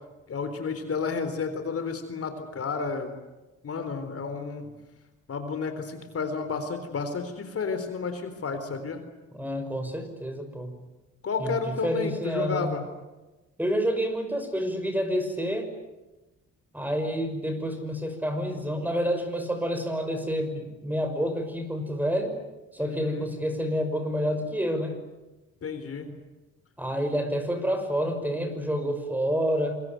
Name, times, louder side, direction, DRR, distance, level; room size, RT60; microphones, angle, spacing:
voice 1, 0.3-3.1 3.6-4.7 5.3-9.0 11.2-12.8 22.8-23.3 25.6-26.2, left 5 dB, 50° left, 8 dB, 3.9 m, -31 dB
voice 2, 9.3-10.8 11.4-12.7 13.6-15.7 16.7-22.4 22.7-25.0 26.8-29.8, equal, 5° right, 7 dB, 5.8 m, -28 dB
27.0 x 22.5 x 9.4 m, 1.1 s
cardioid pair, 90°, 30 cm